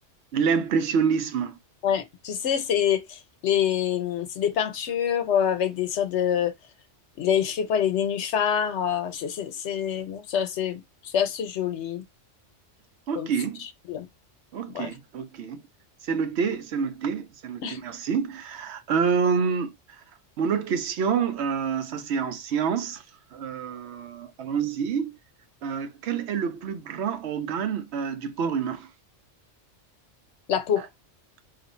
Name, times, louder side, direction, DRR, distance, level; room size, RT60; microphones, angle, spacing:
voice 1, 0.3-1.6 13.1-13.6 14.5-15.6 16.0-20.0 20.4-23.0 23.3-25.2 25.6-28.9 30.8-30.9, right 6 dB, 70° right, 0.8 m, -27 dB
voice 2, 1.8-6.5 7.2-12.0 13.2-13.3 13.9-14.1 14.7-14.9 17.6-17.8 30.5-30.9, left 9 dB, 70° left, 1.0 m, -26 dB
3.2 x 2.4 x 4.2 m
omnidirectional pair, 1.2 m